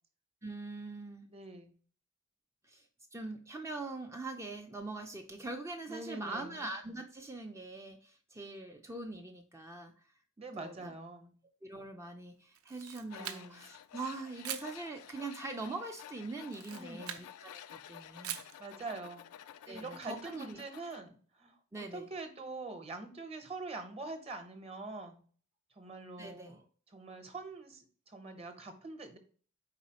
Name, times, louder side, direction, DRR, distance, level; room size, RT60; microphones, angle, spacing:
voice 1, 0.4-1.3 2.6-2.9 3.1-9.9 10.6-10.9 11.6-18.4 19.7-20.6 21.7-22.1 26.2-26.6, right 2 dB, 15° right, 3 dB, 0.4 m, -43 dB
voice 2, 1.3-1.7 5.9-6.6 10.4-11.3 13.2-13.6 16.7-17.2 18.6-19.3 19.7-25.2 25.7-26.6 26.9-29.2, right 3 dB, 30° right, 6 dB, 0.8 m, -44 dB
Camera, 12.5-13.7 14.4-14.7 16.4-17.3 18.2-18.6, right 10 dB, 80° right, 0.5 m, -42 dB
Tools, 13.1-21.0, left 10 dB, 80° left, 0.3 m, -52 dB
4.6 x 4.1 x 2.8 m, 0.43 s
head